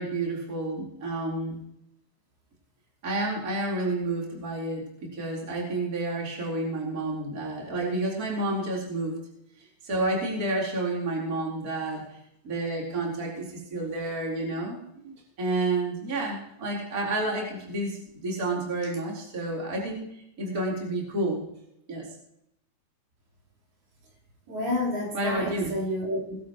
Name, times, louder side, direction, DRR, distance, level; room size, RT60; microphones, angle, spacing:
voice 1, 0.0-1.6 3.0-9.2 9.8-12.0 12.4-14.8 15.4-21.4 21.9-22.1 25.1-25.8, right 2 dB, 20° right, -3 dB, 4.2 m, -30 dB
voice 2, 24.5-26.4, left 1 dB, 60° right, -3 dB, 6.1 m, -30 dB
21.5 x 12.0 x 3.2 m, 0.78 s
omnidirectional pair, 5.0 m